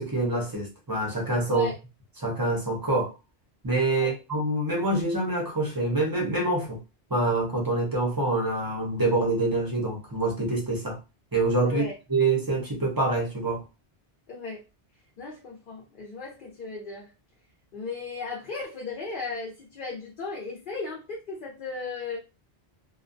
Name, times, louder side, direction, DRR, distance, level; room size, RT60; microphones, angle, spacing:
voice 1, 0.0-1.7 2.2-3.1 3.6-6.8 7.1-11.0 11.3-13.6, right 2 dB, 25° right, 0.5 m, -26 dB
voice 2, 3.9-4.2 11.6-11.9 14.3-14.6 15.2-17.1 17.7-22.2, left 4 dB, 55° left, 0.7 m, -36 dB
2.3 x 2.1 x 2.5 m
omnidirectional pair, 1.1 m